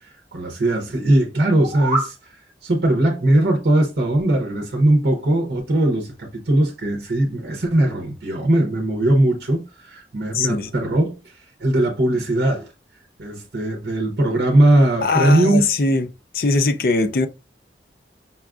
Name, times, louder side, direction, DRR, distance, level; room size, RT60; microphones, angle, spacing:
voice 1, 0.0-2.2 2.6-12.7 13.2-15.6, right 1 dB, 65° right, 0.7 m, -19 dB
sound 1, 1.5-2.2, right 2 dB, 40° right, 1.0 m, -25 dB
voice 2, 10.3-10.7 15.0-16.1 16.3-17.3, left 3 dB, 55° left, 0.4 m, -20 dB
5.5 x 2.4 x 2.3 m
head